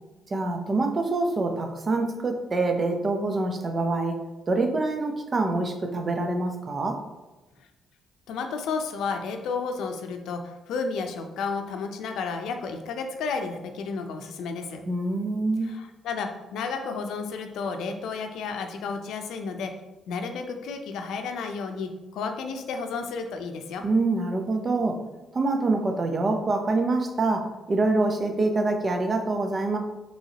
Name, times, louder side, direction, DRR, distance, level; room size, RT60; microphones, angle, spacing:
voice 1, 0.3-4.2 4.5-7.0 14.9-15.7 23.8-25.0 25.3-29.8, right 2 dB, 35° right, 4 dB, 0.7 m, -25 dB
voice 2, 8.3-14.8 15.6-19.7 20.1-23.8, left 4 dB, 80° left, 5 dB, 0.5 m, -32 dB
5.7 x 3.1 x 2.8 m, 1.1 s
cardioid pair, 90°, 0 cm